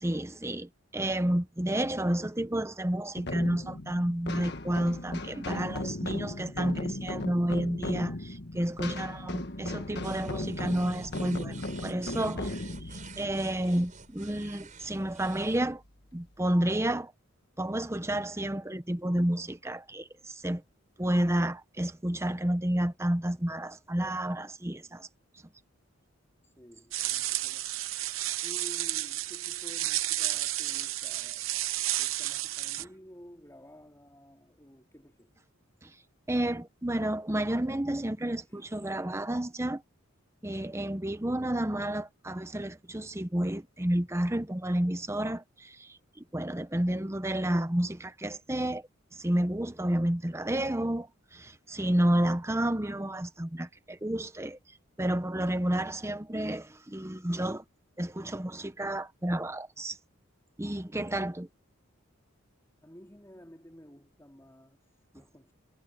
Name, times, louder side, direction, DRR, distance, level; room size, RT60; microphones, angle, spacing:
voice 1, 0.0-11.6 11.8-12.6 12.8-15.8 16.1-17.1 17.6-20.6 21.0-25.1 35.8-35.9 36.3-39.8 40.4-48.8 49.1-54.6 55.0-57.6 58.0-60.0 60.6-61.5, right 1 dB, 15° right, 0.8 m, -30 dB
sound 1, 3.1-14.6, left 2 dB, 50° left, 1.5 m, -37 dB
sound 2, 10.0-15.6, right 5 dB, 35° right, 7.0 m, -49 dB
voice 2, 26.4-27.8 28.4-35.3 38.5-38.6 62.8-65.5, equal, 15° left, 2.8 m, -52 dB
sound 3, 26.9-32.8, right 15 dB, 70° right, 0.8 m, -32 dB
head